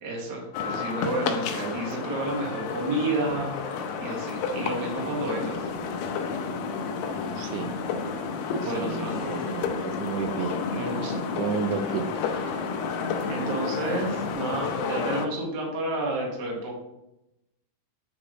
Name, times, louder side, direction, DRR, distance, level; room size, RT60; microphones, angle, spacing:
voice 1, 0.0-3.6 4.0-5.7 8.5-9.6 10.7-11.2 13.3-16.8, right 2 dB, 50° right, -2 dB, 1.3 m, -31 dB
sound 1, 0.5-15.3, left 5 dB, 85° left, 2.0 m, -31 dB
sound 2, 3.2-14.3, left 3 dB, 50° left, 1.6 m, -46 dB
voice 2, 7.4-7.7 8.8-10.6 11.4-12.2, right 6 dB, 85° right, 8 dB, 2.9 m, -32 dB
8.3 x 5.3 x 3.9 m, 0.89 s
omnidirectional pair, 4.8 m